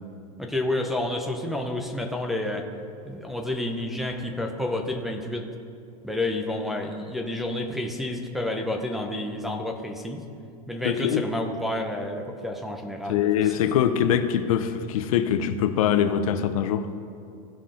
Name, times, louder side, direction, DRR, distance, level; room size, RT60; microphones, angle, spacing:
voice 1, 0.4-2.7 3.0-5.5 6.0-10.2 10.7-13.5, left 1 dB, ahead, 0.7 m, -30 dB
voice 2, 10.8-11.2 13.1-16.9, left 9 dB, 70° left, 0.7 m, -23 dB
16.5 x 5.7 x 3.8 m
supercardioid pair, 150°, 19 cm